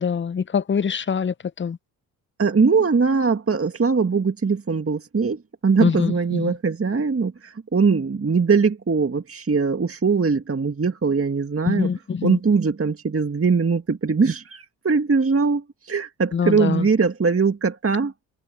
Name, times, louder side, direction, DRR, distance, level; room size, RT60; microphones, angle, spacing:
voice 1, 0.0-1.8 5.8-6.5 11.7-12.4 16.3-16.9, left 6 dB, 25° left, 0.7 m, -24 dB
voice 2, 2.4-11.9 12.2-18.1, right 5 dB, 30° right, 2.1 m, -21 dB
hypercardioid pair, 40°, 47 cm